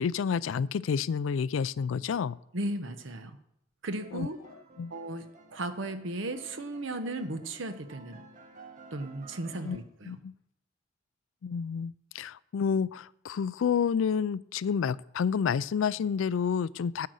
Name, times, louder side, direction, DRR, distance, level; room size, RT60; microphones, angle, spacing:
voice 1, 0.0-2.4 4.1-4.3 4.8-4.9 9.6-9.8 10.1-10.3 11.4-17.1, left 6 dB, 85° left, 20 dB, 0.4 m, -29 dB
voice 2, 2.5-3.4 3.8-4.4 4.9-5.2 5.5-8.2 8.9-10.1, right 2 dB, 80° right, 9 dB, 1.0 m, -35 dB
sound 1, 4.0-9.8, right 3 dB, 40° right, 1.3 m, -53 dB
9.3 x 7.8 x 6.3 m, 0.76 s
head